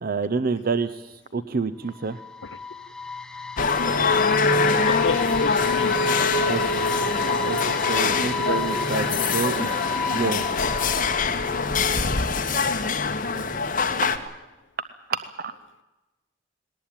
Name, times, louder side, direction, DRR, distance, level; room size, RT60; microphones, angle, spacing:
voice 1, 0.0-2.2 6.5-6.8 7.4-9.8 10.1-10.6 14.2-14.3 15.1-15.5, right 4 dB, 50° right, 14 dB, 0.6 m, -28 dB
sound 1, 1.9-12.0, left 4 dB, 5° left, 0.7 m, -32 dB
sound 2, 3.6-14.2, left 4 dB, 45° left, 1.5 m, -23 dB
voice 2, 4.9-6.0, left 3 dB, 75° left, 11 dB, 0.9 m, -30 dB
19.5 x 18.5 x 8.9 m, 1.1 s
head